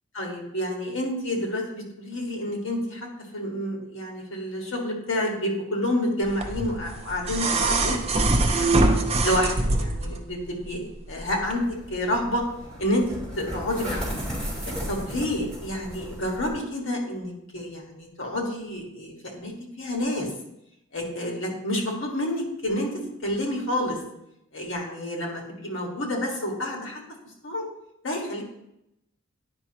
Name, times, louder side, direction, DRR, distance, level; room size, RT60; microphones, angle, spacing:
voice 1, 0.1-3.1 3.3-8.0 8.3-8.9 9.2-11.6 11.9-12.4 12.8-13.0 13.4-14.2 14.9-19.5 19.8-20.3 20.9-24.0 24.5-27.0 27.4-27.6 28.0-28.4, left 1 dB, 65° left, -1 dB, 1.7 m, -29 dB
sound 1, 6.4-10.2 11.4-11.5, right 2 dB, 30° right, 0.6 m, -23 dB
sound 2, 11.5-16.5, equal, 5° left, 2.5 m, -35 dB
9.6 x 5.4 x 3.0 m, 0.83 s
head